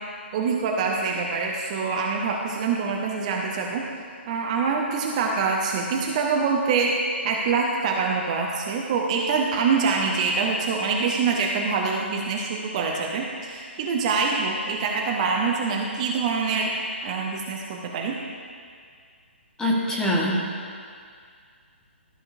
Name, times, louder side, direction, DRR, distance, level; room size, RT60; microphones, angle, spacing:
voice 1, 0.3-3.8 4.3-6.9 7.2-16.7 17.0-18.2, right 5 dB, 35° right, -1 dB, 0.7 m, -25 dB
voice 2, 19.6-20.8, equal, 10° left, -4 dB, 1.2 m, -25 dB
13.0 x 5.4 x 2.6 m, 2.1 s
figure-of-eight pair, 130°, 7 cm